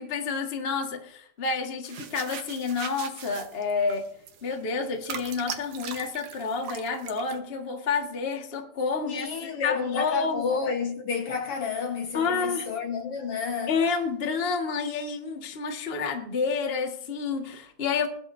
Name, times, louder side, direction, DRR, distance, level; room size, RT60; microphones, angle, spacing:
voice 1, 0.0-4.1 4.4-10.4 12.1-12.7 13.7-18.1, left 5 dB, 80° left, 0.5 m, -29 dB
sound 1, 1.8-7.4, right 8 dB, 65° right, 2.3 m, -40 dB
voice 2, 9.0-13.8, left 5 dB, 55° left, 1.7 m, -30 dB
21.5 x 11.5 x 2.7 m
omnidirectional pair, 4.3 m